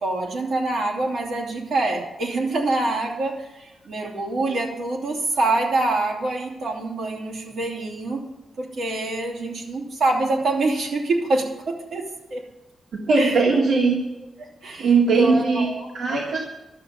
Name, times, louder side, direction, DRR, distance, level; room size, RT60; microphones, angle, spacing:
voice 1, 0.0-8.2 8.6-12.0 12.3-12.4 13.1-13.4 14.4-15.9, right 2 dB, 60° right, -1 dB, 2.9 m, -25 dB
voice 2, 13.1-14.0 14.8-16.4, right 4 dB, 80° right, -2 dB, 1.8 m, -19 dB
12.5 x 7.0 x 9.4 m, 1.0 s
wide cardioid pair, 175°, 0 cm